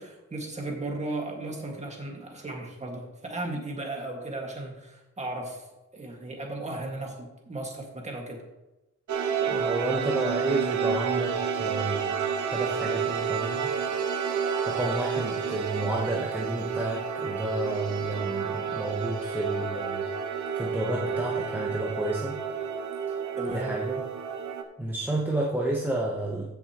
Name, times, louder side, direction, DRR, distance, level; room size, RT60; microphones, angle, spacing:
voice 1, 0.0-5.6 5.9-8.4 23.4-23.8, right 2 dB, 25° right, 0 dB, 2.0 m, -35 dB
sound 1, 9.1-24.6, right 6 dB, 70° right, 1.1 m, -30 dB
voice 2, 9.5-12.2 12.5-13.7 14.7-20.1 20.5-22.4 23.5-24.0 24.8-26.6, right 1 dB, 5° right, -4 dB, 1.0 m, -31 dB
15.0 x 6.9 x 3.1 m, 1.0 s
wide cardioid pair, 150°, 29 cm